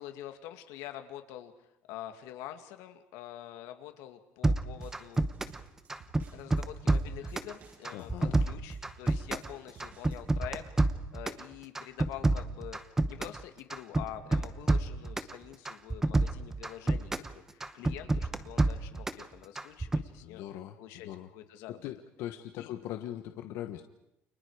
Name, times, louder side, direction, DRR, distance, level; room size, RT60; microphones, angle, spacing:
voice 1, 0.0-1.5 1.9-5.3 6.3-8.1 8.4-10.6 11.1-20.4 20.8-21.8 22.6-22.7, left 12 dB, 90° left, 7 dB, 2.3 m, -46 dB
sound 1, 4.4-5.6 5.9-7.5 7.8-9.5 9.8-11.4 11.7-13.4 13.7-15.3 15.7-17.3 17.6-19.2 19.6-20.0, right 2 dB, 10° right, 0.8 m, -28 dB
sound 2, 4.8-10.3, right 5 dB, 40° right, 6.5 m, -58 dB
voice 2, 7.9-8.5 20.2-21.3 21.7-23.8, left 12 dB, 65° left, 6 dB, 1.3 m, -41 dB
30.0 x 28.5 x 5.0 m, 0.86 s
cardioid pair, 180°, 5 cm